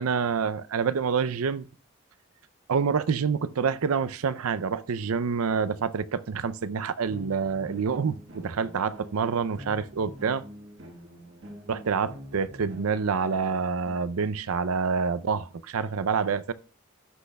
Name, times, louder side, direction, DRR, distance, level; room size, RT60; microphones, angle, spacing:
voice 1, 0.0-1.7 2.7-10.4 11.7-16.5, right 5 dB, 85° right, 0.5 m, -27 dB
sound 1, 7.1-13.9, equal, 60° right, 1.4 m, -46 dB
17.0 x 6.3 x 2.2 m
head